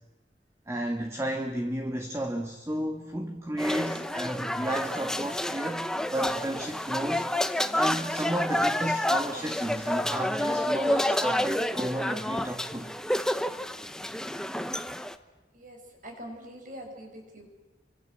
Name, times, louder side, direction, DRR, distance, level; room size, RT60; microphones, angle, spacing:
voice 1, 0.7-7.3 7.7-12.9, right 1 dB, 15° right, 4 dB, 1.6 m, -32 dB
sound 1, 3.6-15.1, left 1 dB, 5° left, 0.9 m, -29 dB
voice 2, 15.5-17.5, equal, 45° right, 3 dB, 6.5 m, -44 dB
29.0 x 24.5 x 8.0 m, 1.2 s
head